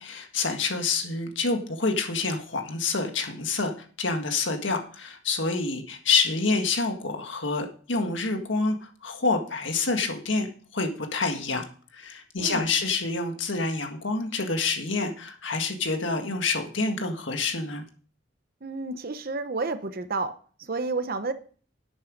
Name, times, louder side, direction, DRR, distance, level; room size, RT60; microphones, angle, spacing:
voice 1, 0.0-10.5 10.7-11.6 11.9-17.8, left 3 dB, 70° left, 1.7 m, -27 dB
voice 2, 12.4-12.7 18.6-21.3, right 3 dB, 50° right, 0.8 m, -31 dB
11.0 x 8.8 x 5.2 m
head